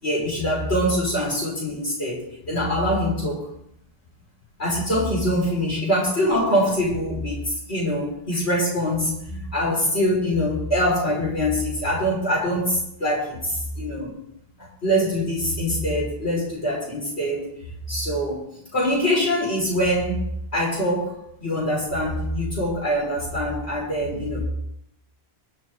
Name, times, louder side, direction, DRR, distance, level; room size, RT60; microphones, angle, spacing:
voice 1, 0.0-3.4 4.6-14.2 14.8-17.4 17.9-18.5 18.7-24.4, equal, 85° left, -5 dB, 6.2 m, -24 dB
23.5 x 8.5 x 4.0 m, 0.77 s
omnidirectional pair, 1.1 m